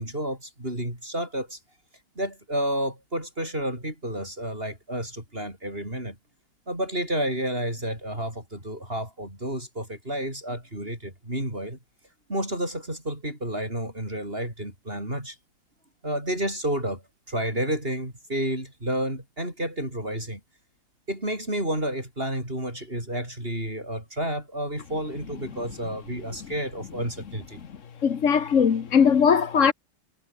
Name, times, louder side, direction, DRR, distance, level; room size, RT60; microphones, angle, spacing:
voice 1, 0.0-1.6 2.2-6.2 6.7-11.8 12.3-15.4 16.0-17.0 17.3-20.4 21.1-27.6, right 1 dB, 25° right, 8.0 m, -30 dB
voice 2, 28.0-29.7, left 7 dB, 45° left, 1.4 m, -19 dB
omnidirectional pair, 2.1 m